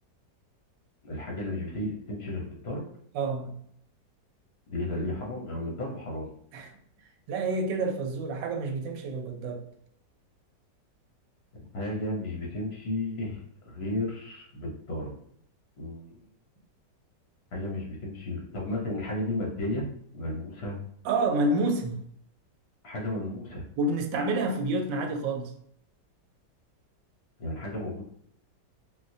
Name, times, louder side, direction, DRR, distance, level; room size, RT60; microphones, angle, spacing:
voice 1, 1.0-2.8 4.7-6.3 11.7-15.1 15.8-16.2 17.5-19.8 20.1-20.8 22.8-23.6 27.4-28.0, left 1 dB, 50° left, -2 dB, 0.7 m, -33 dB
voice 2, 3.1-3.5 6.5-6.7 7.3-9.6 21.0-22.0 23.8-25.5, right 2 dB, 80° right, 4 dB, 1.2 m, -28 dB
4.1 x 2.1 x 2.6 m, 0.66 s
omnidirectional pair, 2.0 m